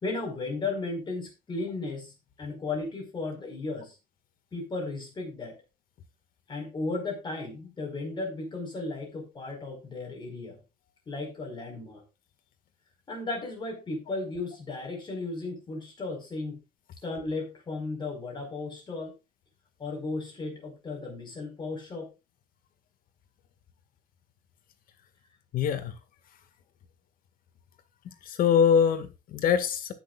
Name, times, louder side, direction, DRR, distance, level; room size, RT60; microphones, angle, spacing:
voice 1, 0.0-3.9 4.5-5.6 6.5-10.6 11.1-12.0 13.1-16.6 17.0-19.1 19.8-22.1, left 3 dB, 30° left, 4.9 m, -35 dB
voice 2, 25.5-25.9 28.3-29.9, left 7 dB, 60° left, 1.8 m, -23 dB
19.5 x 6.6 x 2.4 m
cardioid pair, 140°, 17 cm